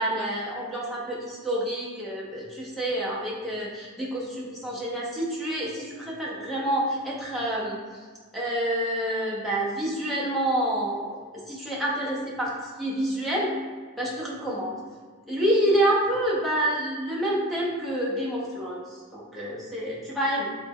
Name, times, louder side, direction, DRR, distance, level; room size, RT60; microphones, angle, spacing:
voice 1, 0.0-7.8 8.3-13.5 14.0-14.8 15.3-20.5, right 1 dB, ahead, -6 dB, 0.6 m, -28 dB
3.4 x 2.1 x 3.4 m, 1.5 s
head